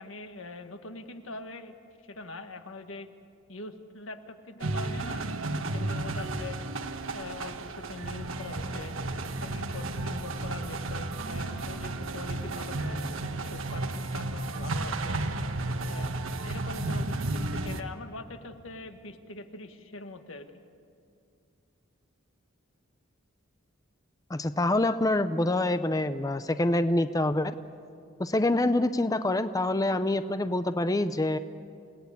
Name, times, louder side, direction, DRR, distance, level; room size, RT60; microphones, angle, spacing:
voice 1, 0.0-1.7 2.0-3.1 3.5-6.6 7.1-9.0 9.4-13.0 13.4-15.2 15.9-20.5, left 2 dB, 85° left, 7 dB, 1.6 m, -43 dB
sound 1, 4.6-17.8, right 2 dB, 90° right, 1.3 m, -33 dB
voice 2, 24.3-27.5 28.2-31.4, left 2 dB, 20° left, 11 dB, 0.5 m, -26 dB
28.5 x 17.5 x 8.3 m, 2.4 s
head